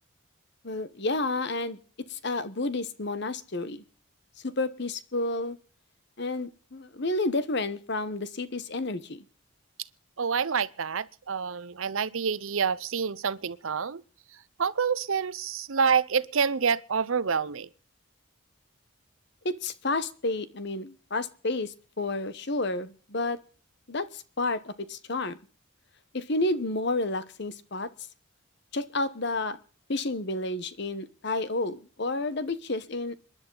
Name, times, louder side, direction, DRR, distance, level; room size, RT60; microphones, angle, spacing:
voice 1, 0.6-3.8 4.4-5.6 6.2-9.2 19.4-23.4 23.9-25.4 26.1-27.9 28.7-29.6 29.9-33.1, left 2 dB, 55° left, 1.0 m, -30 dB
voice 2, 10.2-14.0 14.6-17.7, right 6 dB, 75° right, 0.7 m, -27 dB
26.5 x 11.0 x 3.9 m
head